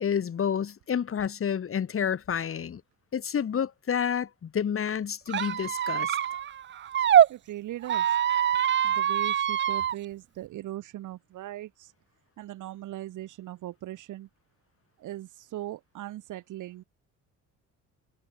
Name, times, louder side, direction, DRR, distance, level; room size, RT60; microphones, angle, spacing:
voice 1, 0.0-2.8 3.1-6.2, left 8 dB, 45° left, 5.6 m, -29 dB
Squeak, 5.3-7.3 7.8-9.9, right 10 dB, 40° right, 0.6 m, -24 dB
voice 2, 7.3-8.2 8.8-11.9 12.4-14.3 15.0-16.8, right 14 dB, 75° right, 4.1 m, -39 dB
cardioid pair, 115°, 30 cm